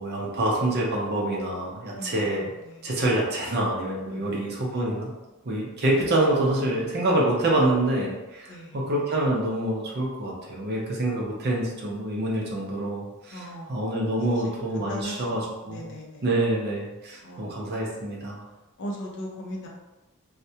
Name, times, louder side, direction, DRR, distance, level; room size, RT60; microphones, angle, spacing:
voice 1, 0.0-2.5 2.8-5.1 5.4-15.9 16.2-18.5, right 1 dB, 45° right, -2 dB, 0.6 m, -26 dB
voice 2, 2.0-2.4 2.6-2.9 4.1-4.4 8.5-8.8 13.3-13.8 14.4-16.2 17.2-17.6 18.8-19.7, equal, 55° left, -1 dB, 0.5 m, -39 dB
2.3 x 2.1 x 2.7 m, 1.1 s
head